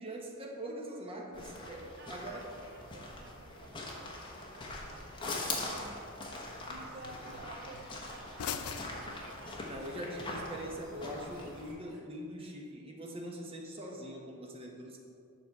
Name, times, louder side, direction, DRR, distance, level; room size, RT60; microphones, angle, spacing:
voice 1, 0.0-1.8 2.1-2.4 9.6-15.0, equal, 25° right, 0 dB, 0.9 m, -42 dB
sound 1, 1.3-11.7, left 2 dB, 20° left, 1.0 m, -42 dB
voice 2, 1.6-5.2 5.5-6.1 6.7-10.7, right 2 dB, 55° right, 1 dB, 0.5 m, -53 dB
sound 2, 2.0-10.0, left 7 dB, 80° left, 0.5 m, -48 dB
sound 3, 6.8-12.0, right 2 dB, 70° right, 1.2 m, -58 dB
7.5 x 5.7 x 4.6 m, 2.5 s
head